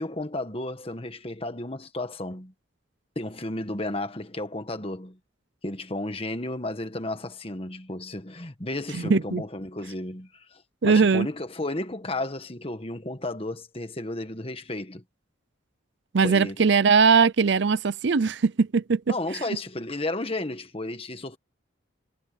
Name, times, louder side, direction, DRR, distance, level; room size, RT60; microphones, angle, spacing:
voice 1, 0.0-2.5 3.1-5.2 5.6-15.0 16.2-16.6 19.1-21.4, left 2 dB, 30° left, 1.6 m, -33 dB
voice 2, 8.9-9.4 10.8-11.3 16.1-19.1, right 5 dB, 60° right, 0.5 m, -20 dB
head